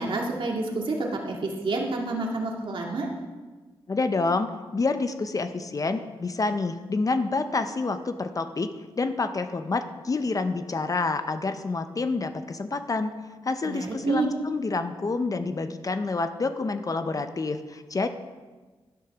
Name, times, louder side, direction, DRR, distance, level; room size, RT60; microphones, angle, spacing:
voice 1, 0.0-3.1 13.6-14.3, right 3 dB, 60° right, -1 dB, 2.0 m, -28 dB
voice 2, 3.9-13.2 13.4-18.1, left 3 dB, 35° left, 9 dB, 0.6 m, -28 dB
12.0 x 6.4 x 6.0 m, 1.3 s
cardioid pair, 90°, 10 cm